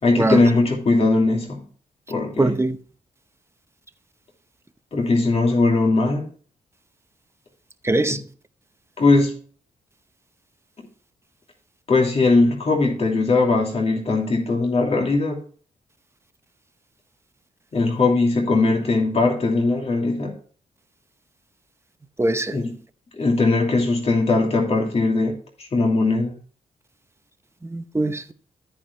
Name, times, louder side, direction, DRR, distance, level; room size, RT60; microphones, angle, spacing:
voice 1, 0.0-1.6 2.1-2.5 4.9-6.3 8.1-8.2 9.0-9.4 11.9-15.4 17.7-20.3 22.5-22.7 23.2-26.3, left 3 dB, 45° left, 2.8 m, -20 dB
voice 2, 2.4-2.8 7.8-8.2 22.2-22.6 27.6-28.3, right 2 dB, 20° right, 0.9 m, -22 dB
14.0 x 4.9 x 3.3 m
supercardioid pair, 55°, 14 cm